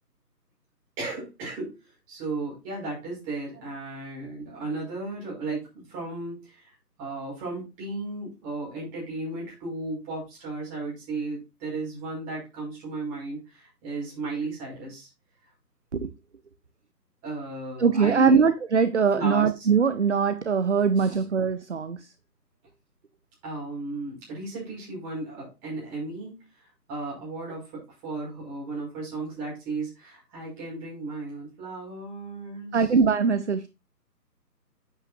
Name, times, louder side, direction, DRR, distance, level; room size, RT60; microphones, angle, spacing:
voice 1, 1.0-15.1 17.2-18.5 19.1-19.5 21.0-21.2 23.4-32.9, right 3 dB, 15° right, 5.4 m, -35 dB
voice 2, 17.8-22.1 32.7-33.7, right 5 dB, 45° right, 0.6 m, -22 dB
8.9 x 8.2 x 2.6 m
figure-of-eight pair, 150°, 49 cm